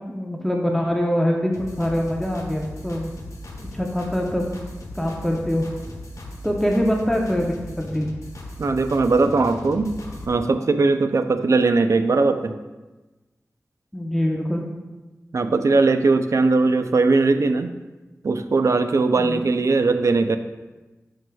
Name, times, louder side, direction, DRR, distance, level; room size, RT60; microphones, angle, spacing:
voice 1, 0.0-1.5 1.8-3.1 3.7-4.5 5.0-5.7 6.4-8.1 13.9-14.6 19.2-19.5, equal, 5° left, 0 dB, 0.7 m, -24 dB
sound 1, 1.5-10.3, left 1 dB, 70° left, 1.1 m, -37 dB
voice 2, 8.6-9.9 10.3-12.5 15.3-17.7 18.2-20.4, right 3 dB, 65° right, 9 dB, 0.4 m, -19 dB
12.0 x 4.8 x 2.3 m, 1.2 s
wide cardioid pair, 70°, 6 cm